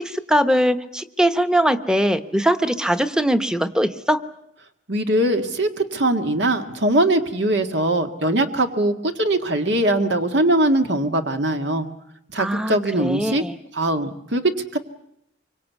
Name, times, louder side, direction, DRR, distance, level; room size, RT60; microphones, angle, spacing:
voice 1, 0.0-4.2 12.4-13.5, equal, 5° right, 10 dB, 1.0 m, -21 dB
voice 2, 4.9-11.9 12.3-13.4 13.7-14.8, right 1 dB, 70° right, 6 dB, 1.8 m, -21 dB
25.0 x 24.0 x 8.3 m, 0.77 s
head